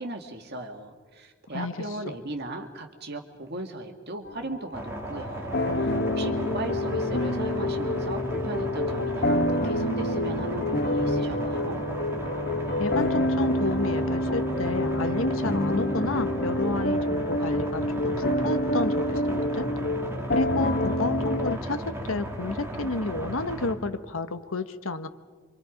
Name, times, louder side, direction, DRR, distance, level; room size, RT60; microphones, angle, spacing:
voice 1, 0.0-5.9 6.2-11.8, right 2 dB, 50° right, 4 dB, 2.2 m, -37 dB
sound 1, 4.2-21.6, left 1 dB, 50° left, 1.2 m, -27 dB
sound 2, 4.7-23.7, right 1 dB, 10° right, 2.5 m, -36 dB
voice 2, 12.8-19.7 20.2-25.1, left 2 dB, 75° left, 10 dB, 1.2 m, -31 dB
27.5 x 25.5 x 5.3 m, 1.5 s
head